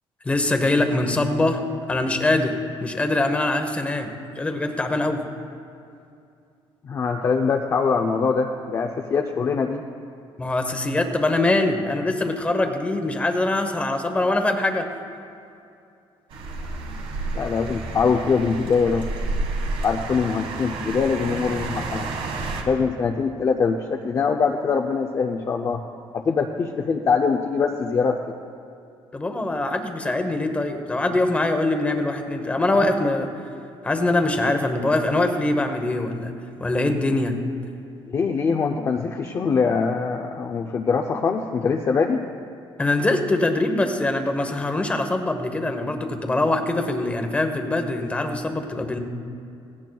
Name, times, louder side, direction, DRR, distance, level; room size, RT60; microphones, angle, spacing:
voice 1, 0.2-5.2 10.4-14.9 29.1-33.3 33.8-36.3 36.6-37.4 42.8-49.0, left 2 dB, 15° left, 6 dB, 0.9 m, -23 dB
voice 2, 6.8-9.8 17.3-19.1 19.8-22.1 22.7-25.8 26.1-28.2 38.1-42.2, left 5 dB, 35° left, 2 dB, 0.5 m, -23 dB
sound 1, 16.3-22.6, right 3 dB, 70° right, 1.6 m, -30 dB
17.0 x 17.0 x 2.3 m, 2.5 s
cardioid pair, 170°, 10 cm